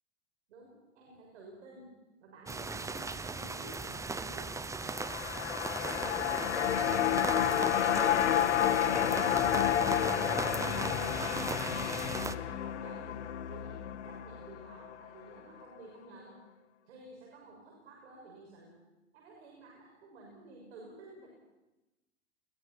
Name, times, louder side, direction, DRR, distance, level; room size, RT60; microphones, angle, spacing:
voice 1, 0.5-5.5 5.9-7.6 12.1-13.2 13.5-16.4 16.8-18.8 19.1-21.3, right 2 dB, 80° right, -1 dB, 6.4 m, -53 dB
sound 1, 2.5-12.4, right 3 dB, 10° right, 0.8 m, -38 dB
sound 2, 4.9-15.3 15.6-15.7, left 10 dB, 90° left, 1.6 m, -30 dB
29.5 x 22.0 x 4.5 m, 1.0 s
hypercardioid pair, 110°, 34 cm